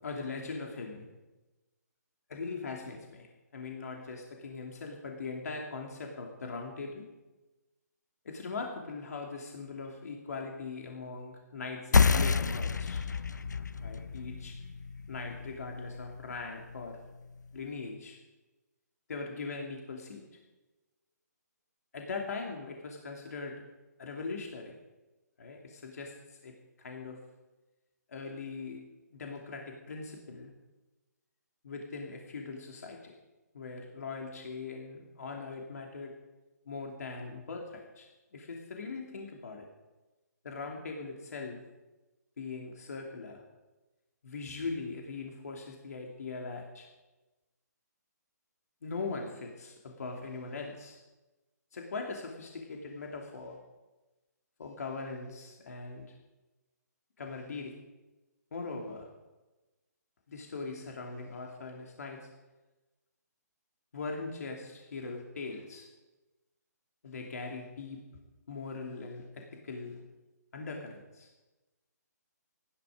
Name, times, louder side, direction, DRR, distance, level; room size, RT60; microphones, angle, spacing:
voice 1, 0.0-1.1 2.3-3.3 3.5-7.1 8.2-13.0 13.8-14.5 15.1-17.0 17.5-18.2 19.1-20.2 21.9-23.6 24.0-24.7 25.4-27.2 28.1-28.8 29.1-30.5 31.6-33.1 33.5-36.1 36.7-39.6 40.4-41.6 42.4-43.4 44.2-46.9 48.8-51.0 51.7-53.6 54.6-56.1 57.2-57.8 58.5-59.1 60.3-62.3 63.9-65.9 67.0-68.0 68.5-70.0 70.5-71.3, left 4 dB, 60° left, 1 dB, 2.8 m, -40 dB
sound 1, 11.9-17.1, left 5 dB, 80° left, 0.7 m, -30 dB
18.0 x 13.5 x 5.1 m, 1.1 s
figure-of-eight pair, 145°, 9 cm